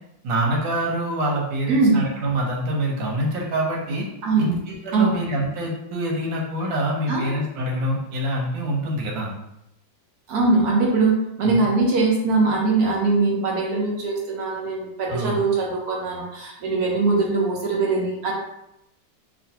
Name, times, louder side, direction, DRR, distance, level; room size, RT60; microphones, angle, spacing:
voice 1, 0.2-4.1 4.4-9.3 11.4-11.6 15.1-15.4, right 1 dB, 85° right, -1 dB, 1.5 m, -25 dB
voice 2, 1.7-2.0 4.2-4.6 4.9-5.2 7.1-7.3 10.3-18.3, right 3 dB, 65° right, -2 dB, 1.1 m, -21 dB
3.0 x 2.6 x 2.7 m, 0.84 s
omnidirectional pair, 2.0 m